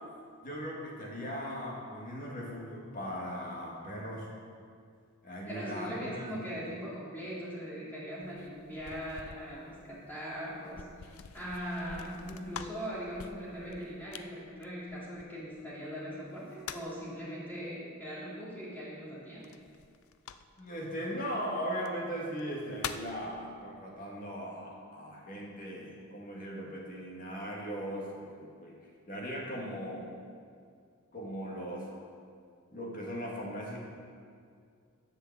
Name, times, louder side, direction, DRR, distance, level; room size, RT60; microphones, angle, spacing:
voice 1, 0.4-4.3 5.2-6.5 20.6-28.7 29.1-30.1 31.1-31.9 32.7-33.8, equal, 40° left, -3 dB, 2.2 m, -38 dB
voice 2, 5.4-19.4, equal, 10° left, -8 dB, 2.9 m, -40 dB
sound 1, 8.2-15.6 16.3-17.1 19.4-20.8 21.7-21.9 22.4-23.2, left 7 dB, 75° left, 0.5 m, -46 dB
10.5 x 5.6 x 7.6 m, 2.2 s
head